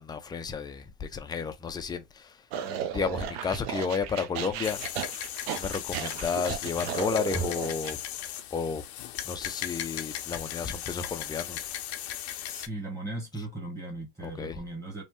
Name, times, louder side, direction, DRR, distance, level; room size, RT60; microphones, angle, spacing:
voice 1, 0.0-2.5 2.9-5.1 5.6-8.0 8.5-8.8 9.2-11.7 13.4-13.5 14.2-14.6, left 5 dB, 15° left, 0.3 m, -32 dB
sound 1, 2.5-7.9, right 9 dB, 75° right, 0.7 m, -35 dB
sound 2, 4.6-12.7, left 11 dB, 85° left, 0.6 m, -37 dB
voice 2, 12.4-15.0, right 2 dB, 10° right, 1.1 m, -38 dB
3.2 x 2.1 x 2.9 m
supercardioid pair, 110°, 31 cm